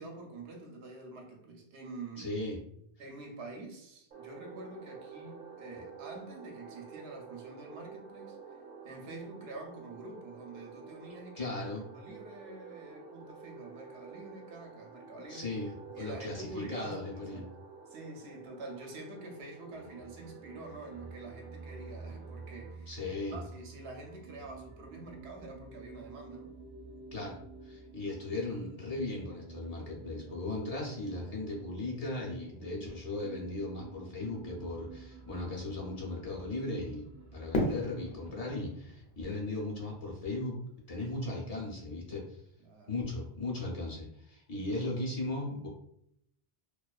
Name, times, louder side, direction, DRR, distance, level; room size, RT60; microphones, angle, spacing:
voice 1, 0.0-2.4 3.0-8.6 8.8-11.6 11.9-15.5 15.9-17.5 17.9-22.9 23.3-26.5 42.6-42.9 44.8-45.0, right 2 dB, 85° right, 1 dB, 0.8 m, -46 dB
voice 2, 2.2-2.6 11.4-11.9 15.3-17.5 22.9-23.4 27.1-37.1 37.3-40.6 40.9-42.4 42.9-45.7, left 2 dB, 45° left, -3 dB, 0.7 m, -37 dB
sound 1, 4.1-22.7, right 5 dB, 60° right, 0.8 m, -50 dB
sound 2, 19.8-38.3, right 4 dB, 25° right, 0.5 m, -50 dB
Fireworks, 37.5-40.6, left 1 dB, 80° left, 0.9 m, -36 dB
2.4 x 2.3 x 2.3 m, 0.74 s
omnidirectional pair, 1.0 m